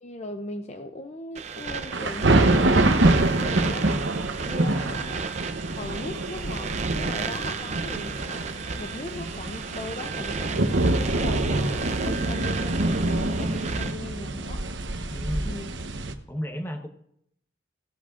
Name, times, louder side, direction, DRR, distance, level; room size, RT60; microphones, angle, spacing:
voice 1, 0.0-4.0 4.4-5.3 5.8-14.7 15.4-15.7, left 2 dB, 35° left, 7 dB, 0.6 m, -38 dB
sound 1, 1.3-13.9, right 5 dB, 40° right, 0.6 m, -33 dB
sound 2, 1.9-16.1, right 2 dB, 85° right, 0.9 m, -25 dB
voice 2, 4.6-5.1 15.1-15.5 16.3-16.9, equal, 15° left, 5 dB, 1.0 m, -34 dB
17.0 x 13.5 x 2.5 m, 0.72 s
head